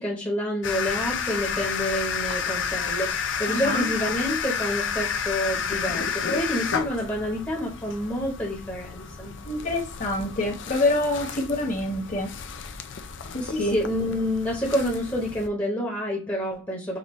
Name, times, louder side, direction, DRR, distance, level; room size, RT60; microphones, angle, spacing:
voice 1, 0.0-9.3 13.4-17.0, equal, 15° left, -3 dB, 0.9 m, -28 dB
sound 1, 0.6-15.5, left 6 dB, 60° left, 0.5 m, -31 dB
voice 2, 3.5-3.9 9.4-12.3 13.3-13.8, left 2 dB, 40° left, 1 dB, 1.2 m, -26 dB
5.2 x 2.5 x 3.1 m, 0.30 s
head